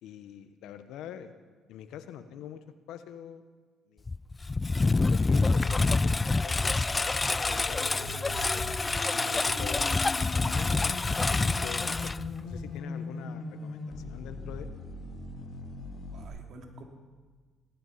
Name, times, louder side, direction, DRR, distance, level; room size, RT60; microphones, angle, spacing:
voice 1, 0.0-1.3 1.7-3.4 3.9-4.0 4.9-6.8 7.5-8.6 9.1-12.1 12.4-14.7, left 9 dB, 80° left, 11 dB, 1.0 m, -44 dB
Engine, 4.1-12.8, left 3 dB, 20° left, 0.4 m, -27 dB
sound 1, 5.1-16.3, left 3 dB, 55° left, 2.7 m, -41 dB
sound 2, 7.6-10.5, right 1 dB, 25° right, 6.6 m, -45 dB
voice 2, 15.7-16.8, right 2 dB, 60° right, 3 dB, 2.7 m, -51 dB
17.5 x 14.0 x 5.7 m, 1.4 s
cardioid pair, 85°, 0 cm